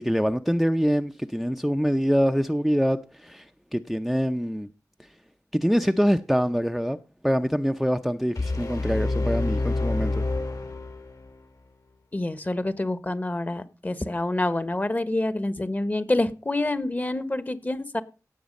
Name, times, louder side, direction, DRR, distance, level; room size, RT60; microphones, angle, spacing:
voice 1, 0.0-3.5 3.7-4.7 5.5-7.0 7.2-10.2, equal, ahead, 0.6 m, -24 dB
sound 1, 8.4-11.4, left 2 dB, 65° left, 3.6 m, -27 dB
voice 2, 12.1-18.0, left 2 dB, 25° left, 1.1 m, -27 dB
17.5 x 7.3 x 5.3 m
wide cardioid pair, 90°, 7 cm